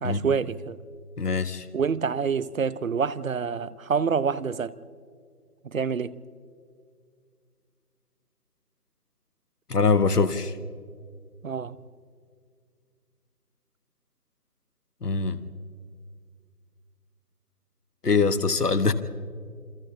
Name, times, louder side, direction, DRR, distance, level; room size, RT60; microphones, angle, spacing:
voice 1, 0.0-0.8 1.7-4.8 5.6-6.2 11.4-11.8, right 6 dB, 60° right, 0.9 m, -27 dB
voice 2, 1.2-1.6 9.7-10.5 15.0-15.4 18.0-18.9, left 4 dB, 80° left, 1.4 m, -23 dB
27.5 x 25.0 x 3.8 m
figure-of-eight pair, 155°, 46 cm